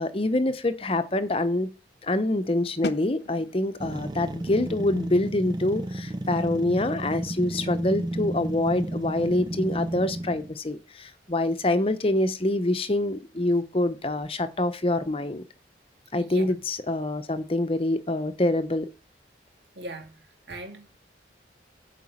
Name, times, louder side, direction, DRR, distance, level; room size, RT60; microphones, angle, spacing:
voice 1, 0.0-1.7 2.0-15.5 16.1-18.9, left 1 dB, 30° left, 0.8 m, -26 dB
sound 1, 2.8-8.5, left 2 dB, 60° left, 0.7 m, -42 dB
sound 2, 3.8-10.6, right 1 dB, 25° right, 0.5 m, -32 dB
voice 2, 16.2-16.5 19.8-21.0, right 1 dB, 65° right, 2.8 m, -40 dB
9.1 x 5.0 x 7.2 m
head